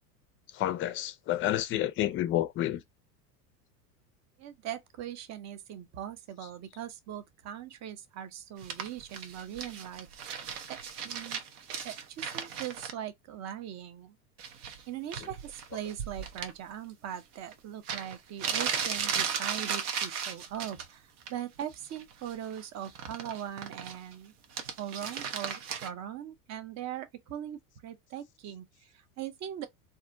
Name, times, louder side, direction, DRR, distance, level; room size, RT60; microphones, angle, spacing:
voice 1, 0.5-2.8, left 13 dB, 30° left, 0.4 m, -29 dB
voice 2, 4.4-10.1 10.7-10.8 11.0-11.4 11.8-14.2 14.9-24.3 24.8-29.7, right 10 dB, 35° right, 0.7 m, -40 dB
sound 1, 8.6-12.9 14.4-14.8 15.1-16.5 17.5-17.6 17.9-20.9 21.2-21.6 21.9-24.1 24.4-25.9, right 7 dB, 75° right, 0.8 m, -36 dB
2.6 x 2.0 x 3.7 m
hypercardioid pair, 100°, 46 cm